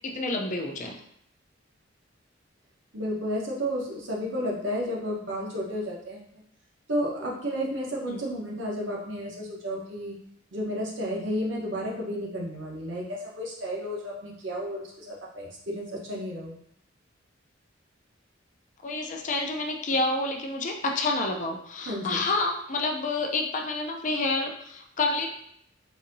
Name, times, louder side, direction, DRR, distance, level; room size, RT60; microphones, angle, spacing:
voice 1, 0.0-0.9 8.1-8.2 18.8-25.3, left 2 dB, 40° left, 2 dB, 0.4 m, -28 dB
voice 2, 2.9-6.2 6.9-10.1 10.5-16.5 21.9-22.2, equal, 70° right, -3 dB, 1.0 m, -32 dB
4.1 x 2.7 x 2.6 m, 0.73 s
head